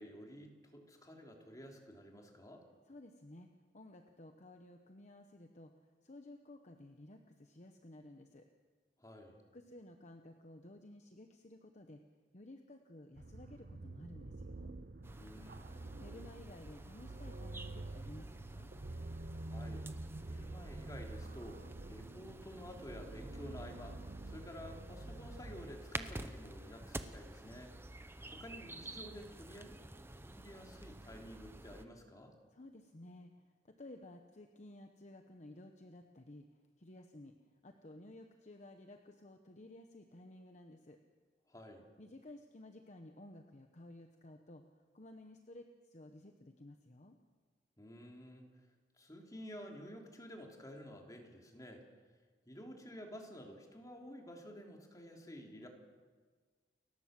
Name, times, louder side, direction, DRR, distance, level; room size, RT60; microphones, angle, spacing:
voice 1, 0.0-2.6 9.0-9.4 15.2-15.8 19.5-19.9 20.2-27.7 28.3-29.8 30.1-32.3 41.5-41.9 47.8-48.4 49.0-51.9 52.4-55.7, equal, 20° left, 1 dB, 3.2 m, -51 dB
voice 2, 2.9-8.4 9.5-12.0 12.3-14.7 16.0-18.7 32.5-37.4 37.6-41.0 42.0-44.6 44.9-47.2, left 1 dB, 45° left, 5 dB, 1.1 m, -55 dB
sound 1, 13.2-25.7, right 2 dB, 55° right, 0.7 m, -48 dB
sound 2, 15.0-31.8, right 1 dB, 15° right, 0.9 m, -50 dB
29.5 x 12.0 x 7.7 m, 1.4 s
head